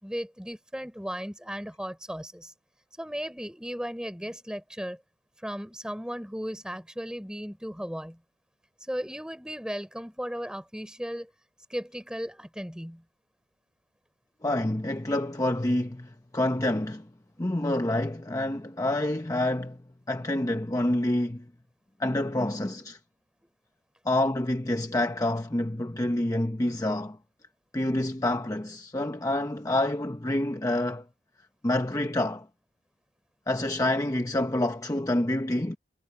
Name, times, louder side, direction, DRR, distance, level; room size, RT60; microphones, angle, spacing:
voice 1, 0.0-2.5 3.0-5.0 5.4-8.2 8.9-11.3 11.7-13.0, equal, 5° right, 6.0 m, -36 dB
voice 2, 14.4-17.1 17.4-19.8 20.1-21.5 22.0-23.0 24.0-27.2 27.7-31.0 31.6-32.5 33.5-35.8, left 1 dB, 20° left, 0.8 m, -27 dB
head